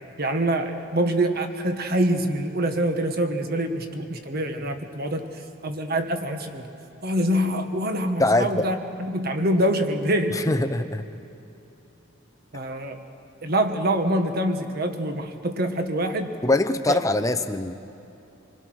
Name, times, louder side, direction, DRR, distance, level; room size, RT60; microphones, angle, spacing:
voice 1, 0.2-5.2 5.6-6.6 7.0-10.5 12.5-13.0 13.4-16.3 16.9-17.0, right 1 dB, 45° right, 6 dB, 1.5 m, -25 dB
voice 2, 8.2-8.7 10.3-11.0 16.4-17.7, left 2 dB, 15° left, 8 dB, 0.7 m, -23 dB
27.5 x 21.0 x 6.3 m, 3.0 s
head